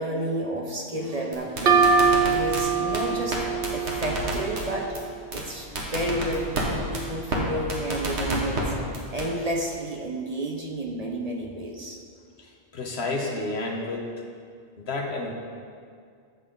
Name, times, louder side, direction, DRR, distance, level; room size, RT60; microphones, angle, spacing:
voice 1, 0.0-3.4 3.7-4.9 5.3-12.0, right 1 dB, 35° right, 0 dB, 1.0 m, -31 dB
sound 1, 1.3-2.6 2.9-3.0 3.3-3.4 3.6-4.6 4.9-5.0 5.3-5.4 5.8-6.6 6.9-7.0 7.3-7.4 7.7-8.6 8.9-9.3, right 1 dB, 75° right, 1.8 m, -29 dB
sound 2, 1.7-5.2, right 5 dB, 60° right, 1.0 m, -23 dB
voice 2, 12.4-14.1 14.8-15.3, left 2 dB, 70° left, 2 dB, 1.3 m, -31 dB
14.0 x 7.1 x 3.9 m, 2.2 s
omnidirectional pair, 1.1 m